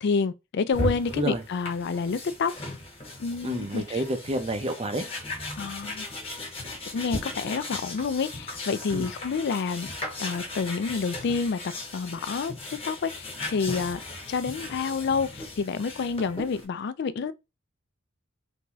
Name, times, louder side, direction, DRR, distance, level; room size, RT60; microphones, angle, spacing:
voice 1, 0.0-2.5 3.2-4.0 5.6-6.1 6.9-9.9 10.2-12.5 12.8-14.0 14.3-17.3, left 5 dB, 55° left, 0.4 m, -28 dB
sound 1, 0.7-16.6, left 1 dB, 30° left, 1.2 m, -37 dB
voice 2, 3.4-5.1 8.9-9.1, right 1 dB, 30° right, 0.6 m, -29 dB
3.4 x 2.7 x 3.0 m
head